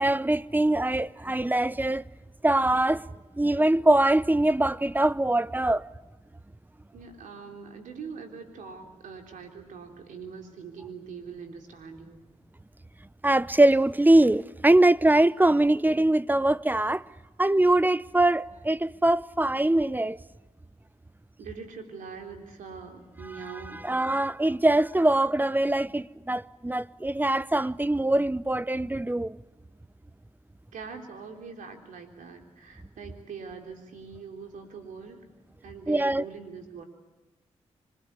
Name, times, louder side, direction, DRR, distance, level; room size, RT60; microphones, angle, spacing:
voice 1, 0.0-2.0 2.4-3.0 3.4-5.9 13.2-17.0 17.4-20.2 23.8-29.4 35.9-36.2, right 1 dB, 15° right, 0.8 m, -23 dB
voice 2, 6.9-12.3 21.4-23.8 30.7-35.3 35.6-36.9, right 5 dB, 80° right, 3.6 m, -42 dB
26.5 x 22.0 x 8.4 m
supercardioid pair, 40°, 13 cm